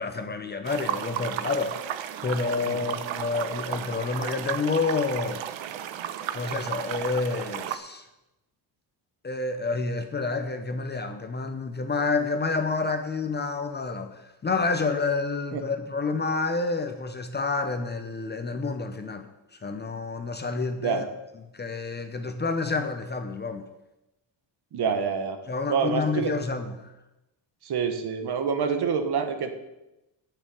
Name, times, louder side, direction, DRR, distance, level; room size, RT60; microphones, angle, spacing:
voice 1, 0.0-1.8 2.2-5.4 6.3-8.1 9.2-19.3 19.6-21.0 21.4-23.7 25.5-26.9, left 4 dB, 25° left, 0.7 m, -29 dB
sound 1, 0.6-7.8, right 11 dB, 80° right, 0.9 m, -34 dB
voice 2, 24.7-25.4 25.7-26.4 27.6-29.5, right 6 dB, 60° right, 1.4 m, -27 dB
9.3 x 6.8 x 8.6 m
cardioid pair, 165°, 45 cm